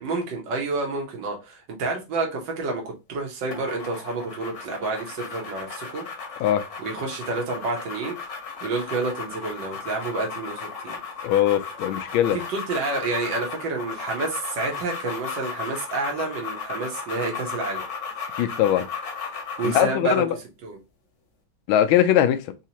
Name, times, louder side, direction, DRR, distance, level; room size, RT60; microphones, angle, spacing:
voice 1, 0.0-6.0 6.8-8.2 8.6-11.0 12.3-17.8 19.6-20.2 20.6-20.8, right 3 dB, 70° right, 1.6 m, -29 dB
sound 1, 3.5-20.0, left 5 dB, 55° left, 1.2 m, -35 dB
voice 2, 11.2-12.4 18.4-18.8 19.6-20.4 21.7-22.4, left 11 dB, 85° left, 1.4 m, -20 dB
4.1 x 2.8 x 2.8 m
omnidirectional pair, 2.2 m